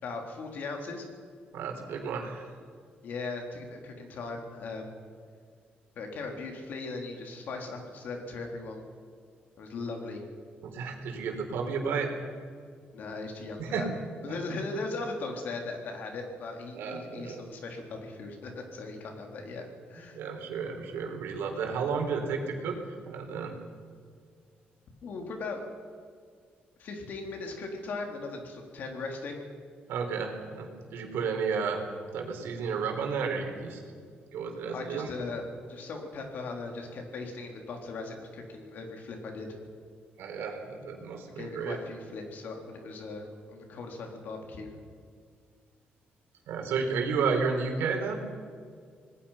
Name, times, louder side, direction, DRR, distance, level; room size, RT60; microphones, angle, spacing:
voice 1, 0.0-1.1 3.0-4.9 6.0-8.8 9.6-10.2 12.9-13.9 14.2-20.2 25.0-25.7 26.8-29.5 34.7-39.5 41.4-44.7, left 3 dB, 55° left, 3 dB, 3.6 m, -38 dB
voice 2, 1.5-2.4 10.6-12.1 13.6-13.9 16.7-17.4 20.2-22.8 23.1-23.5 29.9-31.8 32.1-33.8 34.3-35.1 40.2-41.8 46.5-48.2, right 5 dB, 90° right, 3 dB, 4.1 m, -32 dB
26.0 x 19.5 x 5.8 m, 2.1 s
cardioid pair, 170°, 4 cm